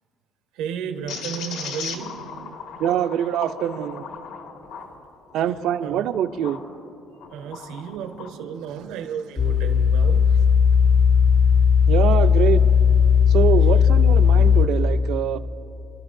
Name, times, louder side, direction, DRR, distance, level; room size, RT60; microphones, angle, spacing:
voice 1, 0.5-2.2 5.8-6.1 7.3-10.4, right 7 dB, 85° right, 5 dB, 1.3 m, -33 dB
sound 1, 1.1-6.6 7.1-8.3, left 6 dB, 75° left, 1.9 m, -37 dB
voice 2, 2.8-4.0 5.3-6.6 7.4-7.5 11.9-12.6 13.3-15.4, right 10 dB, 55° right, 10 dB, 0.6 m, -24 dB
sound 2, 9.4-14.7, left 7 dB, 25° left, 0.6 m, -16 dB
29.5 x 12.0 x 2.7 m, 2.8 s
cardioid pair, 165°, 0 cm